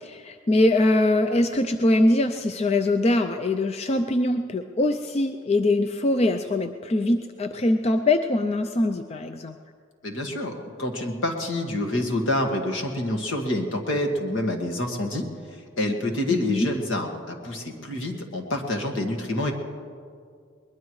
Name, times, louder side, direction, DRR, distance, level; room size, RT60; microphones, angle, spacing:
voice 1, 0.0-9.6 16.3-16.7, left 2 dB, 30° left, 8 dB, 0.4 m, -23 dB
voice 2, 10.0-10.5 10.8-15.3 15.8-19.5, left 1 dB, 70° left, 3 dB, 1.9 m, -27 dB
22.5 x 20.5 x 3.2 m, 2.2 s
head